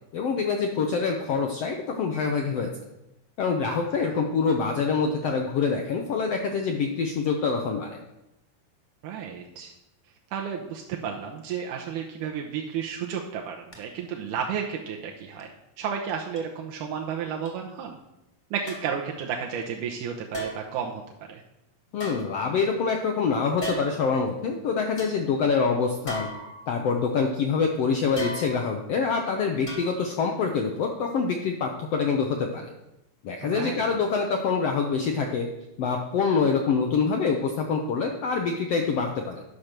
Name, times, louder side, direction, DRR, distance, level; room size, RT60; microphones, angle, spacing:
voice 1, 0.1-2.7 3.4-8.0 21.9-26.3 26.7-32.7 33.2-35.5 35.8-39.4, left 5 dB, 75° left, 3 dB, 1.4 m, -25 dB
voice 2, 9.0-9.7 10.3-15.5 15.8-18.0 18.5-21.0 21.3-21.4 33.4-33.9, right 7 dB, 75° right, 0 dB, 2.2 m, -32 dB
sound 1, 13.7-13.8 14.3-14.6 15.4-15.5 16.4-16.5 17.5-17.6 18.7-19.0 20.3-20.8 21.9-22.8 23.6-24.1 24.6-24.7 25.0-25.2 26.1-26.9 28.2-28.8 29.7-30.2 30.6-30.7, right 1 dB, 20° left, 1.3 m, -37 dB
11.0 x 5.9 x 6.6 m, 0.92 s
omnidirectional pair, 3.9 m